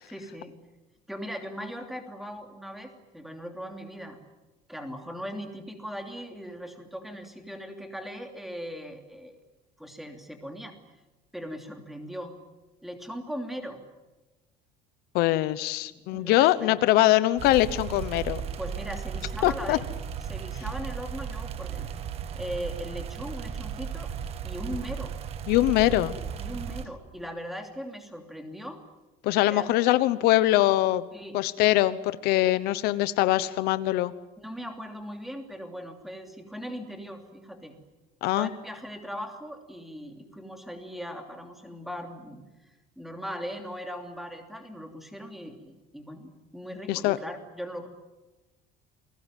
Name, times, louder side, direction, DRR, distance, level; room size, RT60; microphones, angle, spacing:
voice 1, 0.1-0.5 1.1-4.2 4.7-9.4 9.8-10.8 11.3-12.4 12.8-13.9 15.9-16.8 18.6-19.8 20.3-21.9 22.3-24.1 24.4-25.2 25.8-26.0 26.4-28.8 29.5-30.0 31.1-31.3 31.7-31.8 34.4-37.8 38.3-47.9, equal, ahead, 5 dB, 2.9 m, -39 dB
voice 2, 15.1-18.4 19.4-19.8 25.5-26.1 29.2-31.0 31.3-34.1 38.2-38.5 46.9-47.2, left 16 dB, 65° left, 14 dB, 1.0 m, -23 dB
sound 1, 17.4-26.9, right 7 dB, 35° right, 1.6 m, -35 dB
29.0 x 21.5 x 9.2 m, 1.1 s
cardioid pair, 170°, 18 cm